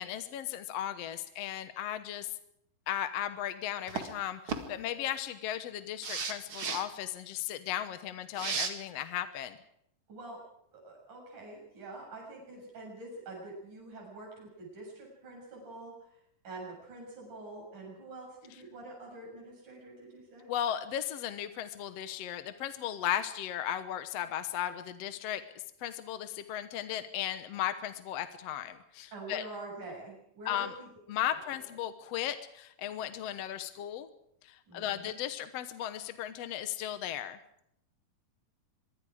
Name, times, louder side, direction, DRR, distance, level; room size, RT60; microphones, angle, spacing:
voice 1, 0.0-2.3 2.9-9.6 20.5-25.4 25.8-29.5 30.5-30.7 31.1-34.1 34.4-37.4, left 11 dB, 65° left, 10 dB, 1.7 m, -36 dB
sound 1, 3.9-4.1 4.5-4.6 6.0-6.8 8.4-8.7, right 5 dB, 45° right, 2.3 m, -34 dB
voice 2, 10.1-10.4 10.7-16.2 16.4-20.5 29.1-30.9 31.6-31.7 34.7-35.2, right 2 dB, 60° right, -1 dB, 8.8 m, -46 dB
24.5 x 23.0 x 5.0 m, 0.74 s
omnidirectional pair, 3.9 m